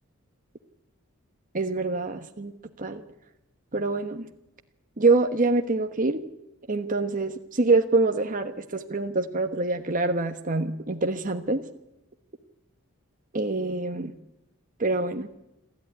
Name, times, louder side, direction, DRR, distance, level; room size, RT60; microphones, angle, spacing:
voice 1, 1.5-2.5 2.8-3.0 3.7-4.3 5.0-6.2 6.7-11.6 13.3-14.1 14.8-15.3, right 3 dB, 40° right, 5 dB, 1.2 m, -25 dB
27.5 x 14.0 x 9.7 m, 0.91 s
head